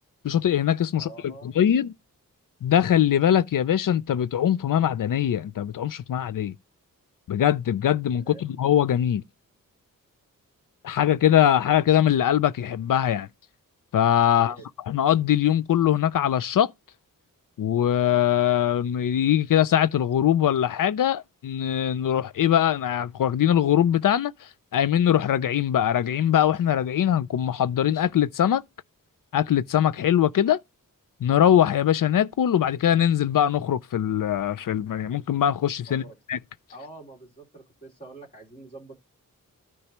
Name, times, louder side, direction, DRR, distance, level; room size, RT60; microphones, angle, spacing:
voice 1, 0.2-1.9 2.6-6.5 7.3-9.2 10.8-13.3 13.9-14.6 14.9-16.7 17.6-28.6 29.3-30.6 31.2-36.0 36.3-36.4, left 10 dB, 70° left, 0.5 m, -22 dB
voice 2, 0.9-1.7 8.2-8.4 14.3-14.7 35.9-36.2 36.7-38.9, right 2 dB, 25° left, 3.1 m, -45 dB
13.5 x 4.6 x 3.0 m
wide cardioid pair, 105°, 33 cm